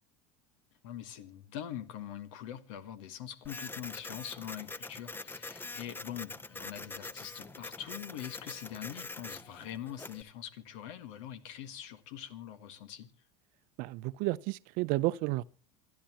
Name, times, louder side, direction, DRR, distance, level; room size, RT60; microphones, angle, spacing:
voice 1, 0.8-13.1, left 10 dB, 75° left, 1.7 m, -43 dB
Printer, 3.4-10.2, left 3 dB, 15° left, 0.8 m, -44 dB
voice 2, 13.8-15.4, right 19 dB, 60° right, 0.6 m, -31 dB
26.5 x 11.5 x 3.0 m
hypercardioid pair, 95°, 16 cm